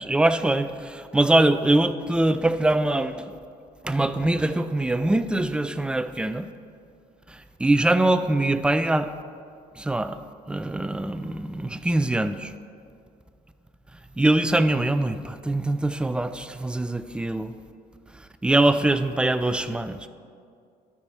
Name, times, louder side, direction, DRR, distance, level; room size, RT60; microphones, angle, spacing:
voice 1, 0.0-3.2 3.8-6.5 7.3-9.1 9.8-10.2 10.5-12.5 14.2-17.5 18.4-20.1, right 2 dB, 5° right, 10 dB, 0.3 m, -23 dB
12.5 x 4.8 x 4.3 m, 2.3 s
cardioid pair, 110°, 17 cm